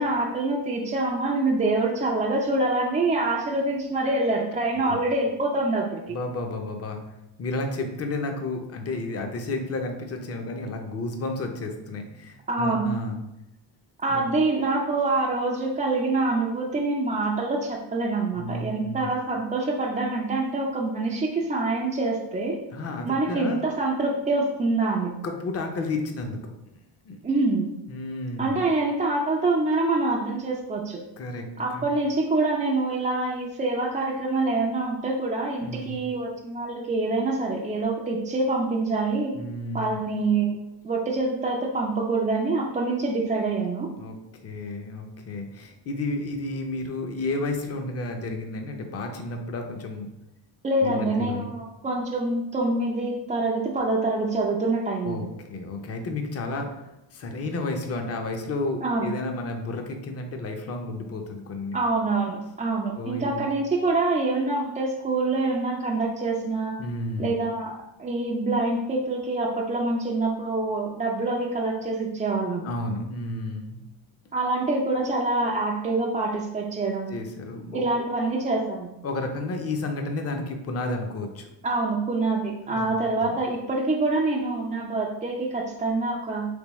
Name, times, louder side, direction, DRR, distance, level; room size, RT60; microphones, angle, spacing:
voice 1, 0.0-6.1 12.5-12.9 14.0-22.6 23.0-25.1 27.2-27.6 28.4-31.0 31.6-39.3 39.7-40.6 40.8-43.9 50.6-55.3 58.8-59.1 61.7-66.8 67.2-67.7 68.0-72.6 74.3-77.1 77.7-78.9 81.6-86.5, right 2 dB, 20° right, -3 dB, 0.3 m, -25 dB
voice 2, 6.1-7.0 7.4-13.2 14.1-14.3 18.3-19.1 22.7-23.6 25.2-26.8 27.0-27.2 27.9-28.6 31.2-31.9 35.6-36.0 39.3-40.0 43.9-44.2 44.4-50.1 50.8-51.5 55.0-56.8 57.1-61.8 63.0-63.5 66.8-67.3 72.6-73.8 77.1-78.1 79.0-81.5 82.6-82.9 83.2-83.4, left 2 dB, 30° left, 4 dB, 0.6 m, -32 dB
3.5 x 3.3 x 3.0 m, 0.89 s
cardioid pair, 100°, 47 cm